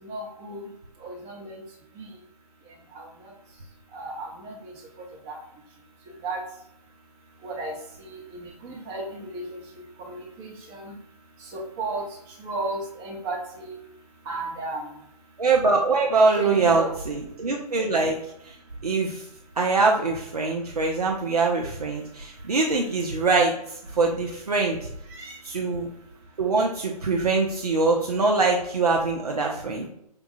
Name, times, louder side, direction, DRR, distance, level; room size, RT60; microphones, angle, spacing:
voice 1, 0.0-0.7 1.0-1.6 2.0-2.1 2.9-3.0 3.9-4.7 5.3-5.4 6.2-6.4 7.4-7.7 8.0-9.6 10.1-10.9 11.5-12.0 12.4-13.8 14.3-14.8 16.4-16.9 25.1-25.3, right 2 dB, 20° right, -1 dB, 0.7 m, -34 dB
voice 2, 15.4-18.2 18.8-19.2 19.6-23.5 24.0-24.9 25.4-25.9 26.4-29.9, right 3 dB, 75° right, 0 dB, 0.6 m, -23 dB
5.1 x 2.3 x 2.6 m, 0.76 s
figure-of-eight pair, 130°, 20 cm